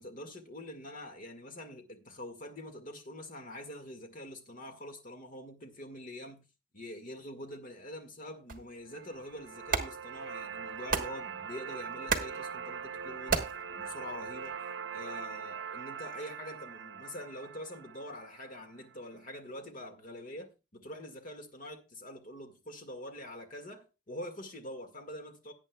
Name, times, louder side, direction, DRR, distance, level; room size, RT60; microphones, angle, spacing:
voice 1, 0.0-6.5 6.7-14.6 14.9-25.5, left 1 dB, 45° left, 1.8 m, -45 dB
sound 1, 8.5-14.6, right 4 dB, 45° right, 1.3 m, -37 dB
sound 2, 8.9-19.0, right 7 dB, 65° right, 0.7 m, -42 dB
17.5 x 8.8 x 2.3 m
head